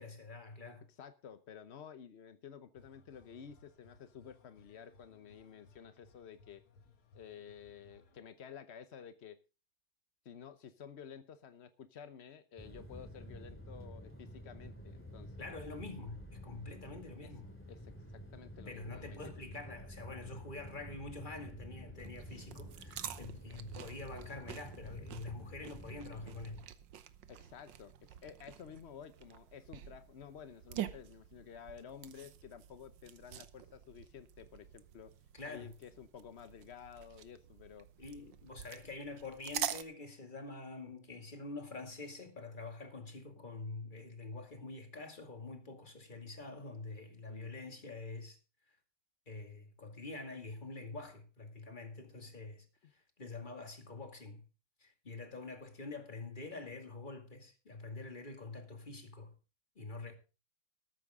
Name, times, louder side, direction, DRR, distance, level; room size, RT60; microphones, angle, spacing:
voice 1, 0.0-0.9 15.4-17.5 18.7-26.6 35.3-35.7 38.0-48.4 49.3-54.4 54.8-59.3 59.8-60.1, left 3 dB, 25° left, 2.3 m, -46 dB
voice 2, 0.9-6.6 7.1-9.4 10.2-15.5 17.2-17.3 17.7-19.3 27.3-35.1 35.4-37.9 47.3-47.5, left 8 dB, 65° left, 0.6 m, -52 dB
sound 1, 2.8-8.2, left 3 dB, 85° left, 2.8 m, -64 dB
sound 2, 12.6-26.6, equal, 5° left, 2.5 m, -50 dB
sound 3, 22.0-39.8, right 11 dB, 65° right, 1.5 m, -47 dB
13.5 x 13.5 x 3.7 m
omnidirectional pair, 2.3 m